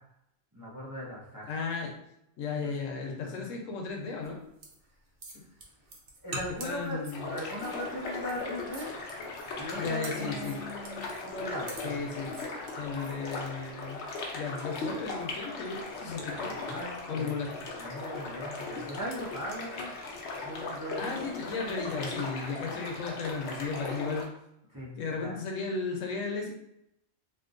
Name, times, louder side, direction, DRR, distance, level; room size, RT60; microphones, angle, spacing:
voice 1, 0.5-1.5 2.6-2.7 3.2-3.5 6.2-8.9 9.6-12.3 16.3-17.3 17.8-19.9 20.4-21.4 24.7-25.4, equal, 20° right, -5 dB, 0.6 m, -39 dB
voice 2, 1.5-1.9 2.4-4.4 6.6-7.3 9.7-10.6 11.8-12.3 12.7-14.0 14.3-16.7 17.1-17.5 21.0-24.3 25.0-26.5, left 4 dB, 90° left, 1 dB, 1.1 m, -35 dB
sound 1, 4.2-13.2, right 1 dB, 55° right, 0.8 m, -46 dB
sound 2, 7.1-24.2, left 3 dB, 65° left, 0.9 m, -38 dB
3.6 x 2.6 x 2.5 m, 0.81 s
omnidirectional pair, 1.3 m